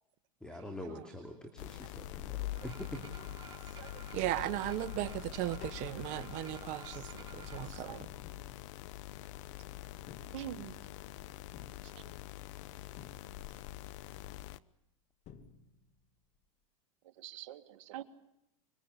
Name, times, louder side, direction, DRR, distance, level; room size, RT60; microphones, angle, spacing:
voice 1, 0.4-3.0, equal, 5° left, 5 dB, 2.9 m, -45 dB
sound 1, 1.6-14.6, left 14 dB, 60° left, 0.9 m, -45 dB
sound 2, 2.5-7.7, right 6 dB, 25° right, 4.6 m, -54 dB
Tap, 3.1-4.1 4.5-9.3 9.9-11.0 11.5-12.5 13.0-13.8 14.8-14.9 15.2-16.1 16.3-16.4, left 7 dB, 40° left, 2.4 m, -56 dB
voice 2, 3.5-4.0 5.9-6.0 6.9-7.2 7.7-8.0 10.3-10.8 11.8-12.1 17.0-18.0, right 12 dB, 65° right, 7 dB, 2.0 m, -47 dB
voice 3, 4.1-8.0, right 15 dB, 45° right, 12 dB, 1.5 m, -37 dB
25.5 x 23.0 x 8.3 m, 0.83 s
supercardioid pair, 125°, 17 cm